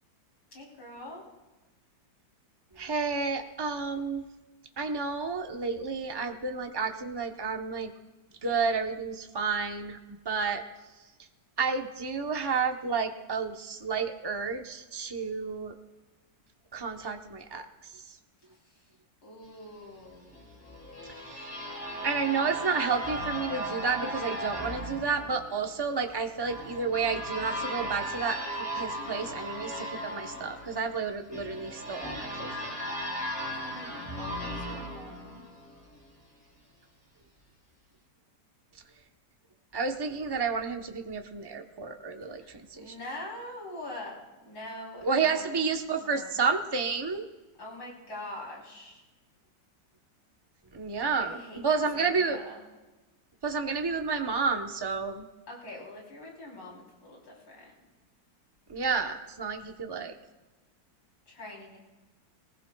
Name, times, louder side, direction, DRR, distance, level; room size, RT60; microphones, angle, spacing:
voice 1, 0.5-1.2 18.5-18.8 19.2-20.4 33.5-35.5 42.3-44.2 44.4-45.6 45.9-46.3 47.6-49.0 51.2-51.6 51.9-52.6 55.5-57.7 61.3-61.8, left 1 dB, 85° left, -4 dB, 4.3 m, -44 dB
voice 2, 2.7-4.2 4.8-7.9 8.4-10.0 10.2-10.6 11.6-15.8 16.7-18.2 21.1-28.4 28.7-32.8 39.7-42.9 45.0-47.2 50.7-52.4 53.4-55.3 58.7-60.1, right 5 dB, 35° right, 4 dB, 0.4 m, -31 dB
sound 1, 20.3-36.0, equal, 10° left, 2.9 m, -37 dB
22.0 x 19.5 x 2.3 m, 1.2 s
omnidirectional pair, 2.0 m